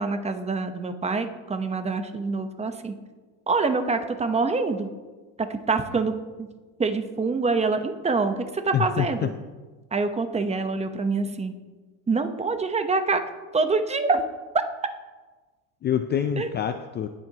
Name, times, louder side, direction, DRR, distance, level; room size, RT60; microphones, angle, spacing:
voice 1, 0.0-2.9 3.5-4.9 5.5-6.1 6.4-6.5 6.8-9.3 9.9-11.5 12.1-13.2 13.5-14.2 16.4-16.5, right 4 dB, 15° right, 8 dB, 0.8 m, -25 dB
voice 2, 8.7-9.3 15.8-17.1, left 9 dB, 30° left, 8 dB, 0.4 m, -26 dB
19.0 x 7.7 x 2.8 m, 1.3 s
cardioid pair, 125°, 39 cm